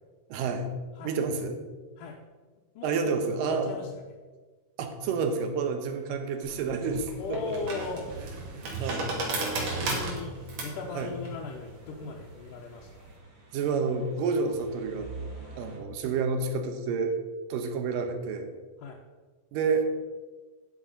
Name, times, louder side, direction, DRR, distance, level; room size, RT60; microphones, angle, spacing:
voice 1, 0.3-0.7 1.0-1.6 2.8-3.7 4.8-7.5 8.5-9.1 11.0-11.1 13.5-15.1 15.6-17.2 17.5-18.5 19.5-19.8, right 5 dB, 85° right, 6 dB, 2.6 m, -29 dB
voice 2, 2.8-4.0 7.2-8.1 9.4-10.4 10.6-13.1 18.8-19.0, left 4 dB, 85° left, -2 dB, 2.5 m, -38 dB
sound 1, 5.2-15.8, right 3 dB, 40° right, 2.4 m, -50 dB
sound 2, 6.4-13.1, right 2 dB, 70° right, 3.5 m, -35 dB
10.0 x 6.4 x 5.2 m, 1.3 s
omnidirectional pair, 3.8 m